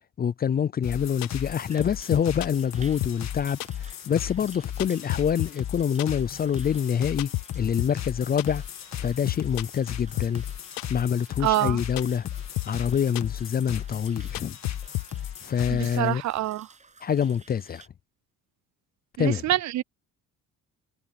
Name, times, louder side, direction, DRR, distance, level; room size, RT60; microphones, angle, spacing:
voice 1, 0.2-3.6 4.1-8.6 9.0-10.4 10.9-12.3 12.6-14.6 15.4-16.2 17.0-17.8 19.2-19.4, left 8 dB, 30° left, 0.4 m, -26 dB
sound 1, 0.8-16.1, left 10 dB, 50° left, 1.9 m, -36 dB
sound 2, 0.9-1.0 1.2-1.6 1.8-1.9 2.1-2.8 3.0-3.3 3.6-4.2 4.5-5.7 6.0-6.3 6.6-6.7 6.9-7.0 7.2-7.5 7.8-8.1 8.4-9.0 9.3-9.9 10.2-10.5 10.8-11.1 11.4-11.5 11.7-12.3 12.6-12.9 13.2-13.8 14.1-14.2 14.3-15.3, left 20 dB, 90° left, 0.6 m, -31 dB
sound 3, 1.3-17.9, right 4 dB, 20° right, 7.3 m, -54 dB
voice 2, 11.4-11.8 15.7-16.7 19.2-19.8, right 15 dB, 55° right, 0.5 m, -26 dB
cardioid pair, 140°, 33 cm